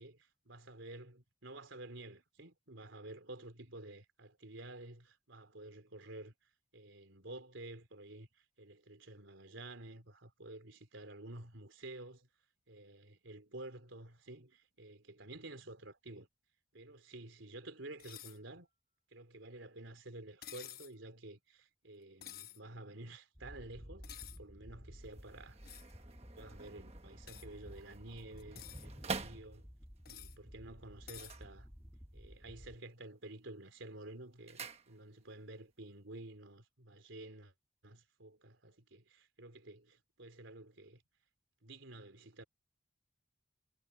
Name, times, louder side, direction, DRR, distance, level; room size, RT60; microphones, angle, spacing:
voice 1, 0.0-6.3 6.7-12.3 12.7-16.3 16.7-18.7 19.1-25.6 26.0-29.7 30.1-31.7 32.1-37.5 37.8-41.0 41.6-42.4, right 2 dB, 85° right, 3.6 m, -51 dB
sound 1, 18.0-18.4 20.4-20.9 22.2-22.6 24.0-24.4 25.7-25.9 27.3-27.5 28.4-28.9 30.1-30.4 31.1-31.4, left 12 dB, 50° left, 1.1 m, -50 dB
sound 2, 23.3-32.8, equal, 5° right, 4.6 m, -53 dB
sound 3, 25.0-30.0 31.0-32.2 32.5-33.0 33.3-35.4 35.7-35.8, right 4 dB, 30° right, 1.3 m, -48 dB
head